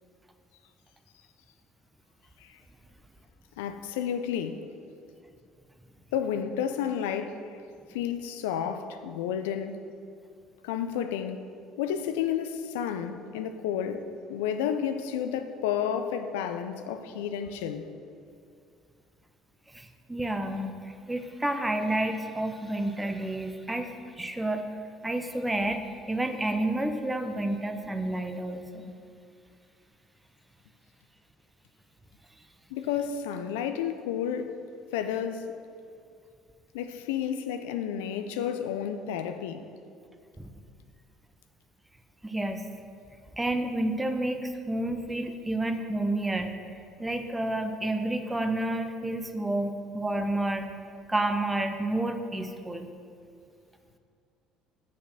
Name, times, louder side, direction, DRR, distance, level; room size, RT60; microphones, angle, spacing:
voice 1, 3.6-4.6 6.1-7.6 7.9-9.8 10.6-11.4 11.8-17.9 32.7-34.6 34.9-35.5 36.7-39.6, left 8 dB, 85° left, 0.4 m, -31 dB
voice 2, 19.7-24.6 25.0-25.8 26.1-28.9 40.4-40.5 42.2-42.6 43.3-50.7 51.1-52.9, right 1 dB, 10° right, 0.8 m, -30 dB
6.4 x 5.6 x 6.3 m
hypercardioid pair, 70°, 0 cm